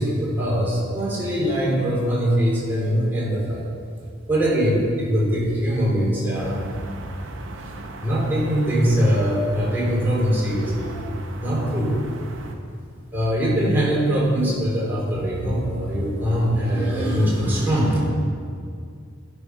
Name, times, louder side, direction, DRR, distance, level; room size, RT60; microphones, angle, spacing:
voice 1, 0.0-3.6 4.3-6.6 8.0-11.1 11.4-12.0 13.1-18.1, equal, 10° right, -6 dB, 2.9 m, -22 dB
sound 1, 6.3-12.6, right 1 dB, 65° right, 0.9 m, -37 dB
14.0 x 6.1 x 5.5 m, 2.3 s
head